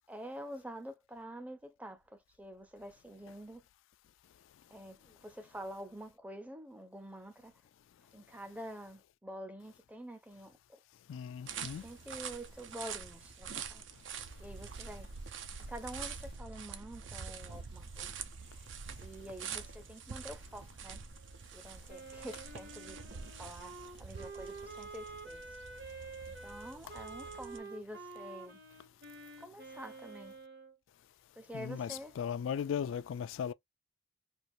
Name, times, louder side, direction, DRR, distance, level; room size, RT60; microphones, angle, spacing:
voice 1, 0.1-3.6 4.7-7.5 8.1-10.8 11.5-13.8 14.4-15.1 15.7-18.1 18.5-18.6 19.0-21.0 21.5-25.4 25.8-26.0 26.3-28.6 29.4-30.3 31.4-32.2, equal, 10° right, 0.5 m, -47 dB
voice 2, 11.1-11.8 31.5-33.5, left 8 dB, 90° left, 0.3 m, -37 dB
sound 1, 11.5-27.6, right 6 dB, 75° right, 0.6 m, -46 dB
Wind instrument woodwind instrument, 21.9-30.7, right 3 dB, 55° right, 1.1 m, -48 dB
4.5 x 2.4 x 2.6 m
head